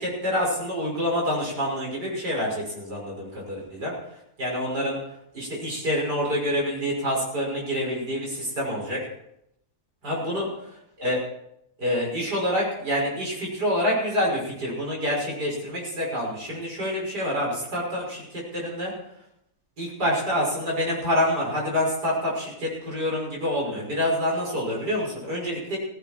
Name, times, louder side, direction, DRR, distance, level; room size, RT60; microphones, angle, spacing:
voice 1, 0.0-3.9 4.4-5.0 5.3-9.0 10.0-10.4 11.0-11.2 11.8-18.9 19.8-25.8, equal, 90° right, -2 dB, 6.7 m, -27 dB
16.5 x 16.0 x 4.5 m, 0.79 s
omnidirectional pair, 1.7 m